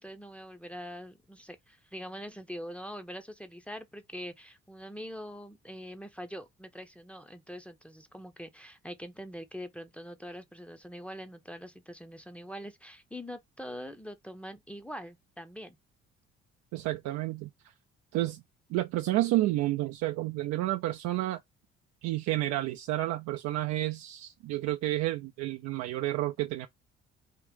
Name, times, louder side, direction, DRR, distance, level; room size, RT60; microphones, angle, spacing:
voice 1, 0.0-15.8, equal, 5° left, 0.7 m, -43 dB
voice 2, 16.7-17.5 18.1-18.4 18.7-21.4 22.0-26.7, right 16 dB, 65° right, 0.5 m, -30 dB
3.6 x 2.4 x 3.5 m
hypercardioid pair, 55°, 31 cm